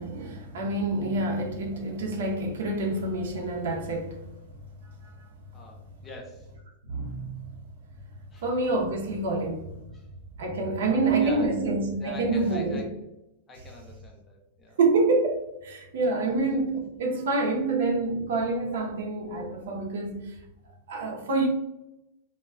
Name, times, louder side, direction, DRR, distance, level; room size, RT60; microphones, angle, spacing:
voice 1, 0.0-4.2 6.9-7.4 8.4-9.7 10.4-12.8 14.8-20.3 20.9-21.5, right 3 dB, 70° right, 0.6 m, -27 dB
voice 2, 5.5-6.5 8.3-8.5 9.9-10.1 10.9-11.6 12.0-13.0 13.5-14.8, left 2 dB, 10° left, 0.4 m, -43 dB
2.1 x 2.0 x 3.3 m
supercardioid pair, 175°, 0 cm